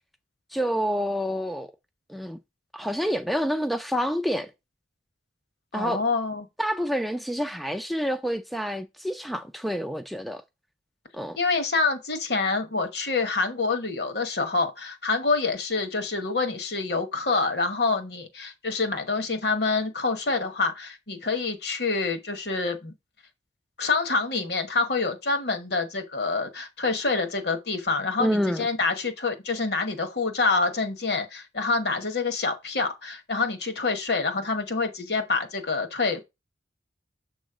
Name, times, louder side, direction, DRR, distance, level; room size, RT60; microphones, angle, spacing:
voice 1, 0.5-1.7 2.1-2.4 2.7-4.5 5.7-6.0 6.6-10.4 11.1-11.4 28.2-28.7, equal, ahead, 0.4 m, -28 dB
voice 2, 5.7-6.5 11.4-22.9 23.8-36.2, left 3 dB, 60° left, 1.1 m, -27 dB
7.2 x 3.1 x 4.9 m
head